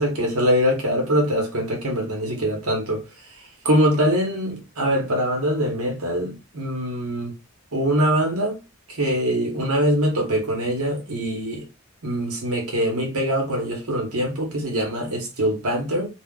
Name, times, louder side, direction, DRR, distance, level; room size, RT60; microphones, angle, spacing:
voice 1, 0.0-3.0 3.6-7.3 7.7-8.6 9.0-11.6 12.0-16.1, equal, 85° right, 1.0 m, -23 dB
2.4 x 2.3 x 3.6 m
head